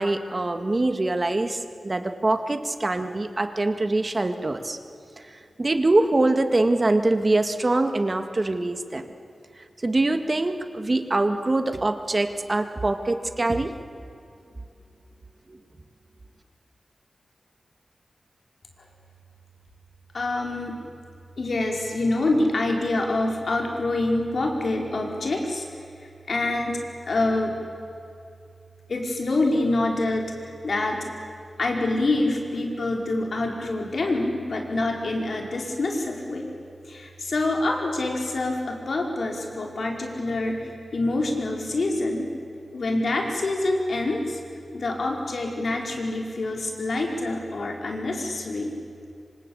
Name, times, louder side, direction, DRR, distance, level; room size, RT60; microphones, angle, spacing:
voice 1, 0.0-4.8 5.3-9.1 9.8-13.7 15.5-15.6, right 2 dB, 35° right, 8 dB, 1.9 m, -24 dB
voice 2, 20.1-20.8 21.4-25.6 26.3-26.8 27.1-27.5 28.9-31.1 31.6-36.5 36.9-42.3 42.7-44.4 44.7-48.7, left 2 dB, 65° left, 1 dB, 4.9 m, -26 dB
26.5 x 26.0 x 8.7 m, 2.5 s
wide cardioid pair, 115°, 0 cm